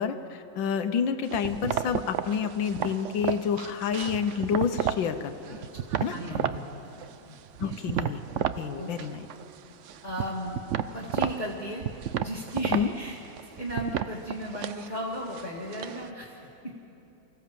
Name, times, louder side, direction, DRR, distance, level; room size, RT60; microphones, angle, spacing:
voice 1, 0.0-5.7 6.0-6.2 7.6-8.2 8.6-9.2 12.7-12.9, left 7 dB, 85° left, 9 dB, 1.7 m, -29 dB
sound 1, 1.3-5.1 5.4-6.6 7.0-8.6 8.9-9.6 9.8-16.1, right 9 dB, 80° right, 0.6 m, -32 dB
voice 2, 6.0-6.6 7.0-7.7 8.7-8.9 10.0-10.6 10.9-11.9 12.1-13.2 13.6-16.8, equal, 25° left, -4 dB, 1.8 m, -35 dB
25.0 x 15.5 x 7.6 m, 2.9 s
omnidirectional pair, 2.0 m